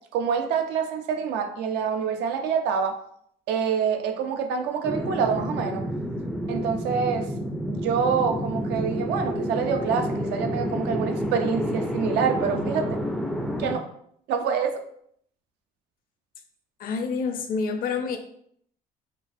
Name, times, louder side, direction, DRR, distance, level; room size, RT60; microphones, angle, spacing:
voice 1, 0.1-3.0 3.5-5.8 6.5-7.3 7.7-13.0 13.6-13.9 14.3-14.8, right 6 dB, 85° right, 6 dB, 0.5 m, -26 dB
sound 1, 4.8-13.7, equal, ahead, 0.3 m, -29 dB
voice 2, 16.8-18.2, left 5 dB, 60° left, 7 dB, 0.5 m, -27 dB
4.4 x 2.4 x 2.5 m, 0.68 s
cardioid pair, 110°, 17 cm